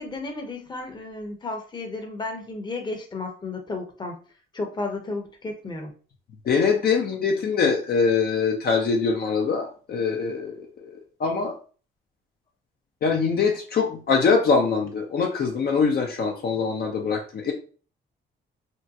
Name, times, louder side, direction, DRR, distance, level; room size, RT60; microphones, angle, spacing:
voice 1, 0.0-4.2 4.5-5.9, left 3 dB, 20° left, 3 dB, 0.8 m, -33 dB
voice 2, 6.4-10.9 11.2-11.6 13.0-17.5, left 5 dB, 50° left, 2 dB, 0.6 m, -23 dB
3.6 x 2.1 x 2.7 m, 0.39 s
cardioid pair, 90°, 20 cm